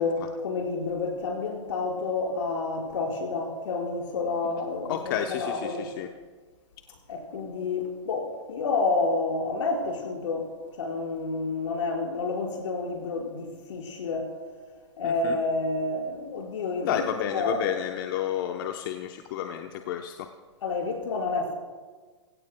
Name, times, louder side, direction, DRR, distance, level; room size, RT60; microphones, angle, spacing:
voice 1, 0.0-5.9 7.1-14.3 15.0-17.7 20.6-21.5, left 3 dB, 75° left, 5.4 m, -29 dB
voice 2, 4.9-6.1 15.0-15.4 16.8-20.3, left 10 dB, 45° left, 0.9 m, -31 dB
24.5 x 17.0 x 2.3 m
hypercardioid pair, 145°, 15 cm